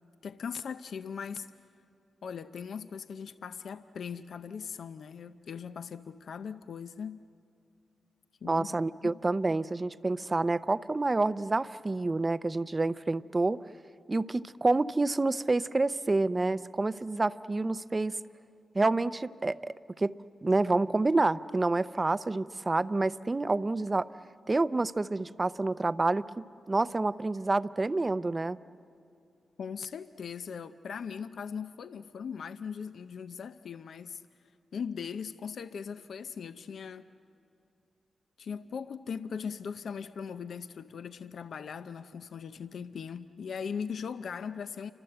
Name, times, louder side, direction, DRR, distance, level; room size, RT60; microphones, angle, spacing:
voice 1, 0.2-1.5 2.2-7.2 8.4-8.7 9.0-9.2 29.6-34.2 34.7-37.1 38.4-44.9, left 6 dB, 70° left, 0.6 m, -39 dB
voice 2, 8.4-13.6 14.1-18.2 18.7-20.1 20.4-24.1 24.5-28.6, right 2 dB, 25° right, 0.5 m, -28 dB
29.0 x 25.0 x 7.9 m
wide cardioid pair, 105°, 0 cm